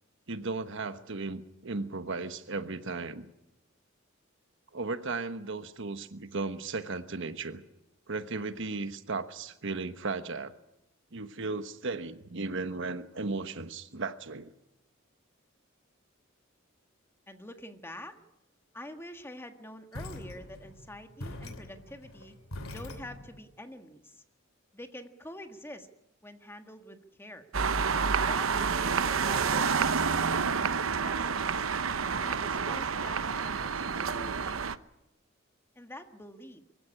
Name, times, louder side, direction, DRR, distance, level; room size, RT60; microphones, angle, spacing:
voice 1, 0.3-3.3 4.7-7.6 8.1-10.5 11.1-14.5, right 3 dB, 65° right, 11 dB, 1.2 m, -35 dB
voice 2, 17.3-18.2 18.7-22.3 22.7-24.2 24.7-25.9 26.2-27.5 28.3-30.1 30.8-31.7 32.2-34.6 35.7-36.6, left 1 dB, 10° left, 7 dB, 1.6 m, -46 dB
sound 1, 19.9-23.4, left 1 dB, 90° left, 2.8 m, -43 dB
sound 2, 27.5-34.8, right 5 dB, 80° right, 0.9 m, -29 dB
24.0 x 15.5 x 9.9 m, 0.88 s
head